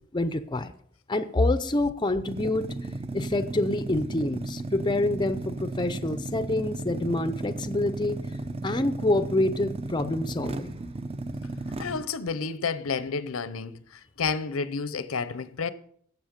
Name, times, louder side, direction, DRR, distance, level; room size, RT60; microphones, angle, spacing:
voice 1, 0.1-0.7 1.1-2.7 3.1-8.2 8.6-10.8, left 2 dB, 20° left, 0.5 m, -27 dB
sound 1, 2.3-12.0, right 2 dB, 30° right, 0.6 m, -34 dB
voice 2, 11.8-13.8 14.2-15.7, left 5 dB, 85° left, 0.7 m, -30 dB
12.0 x 7.9 x 5.2 m
head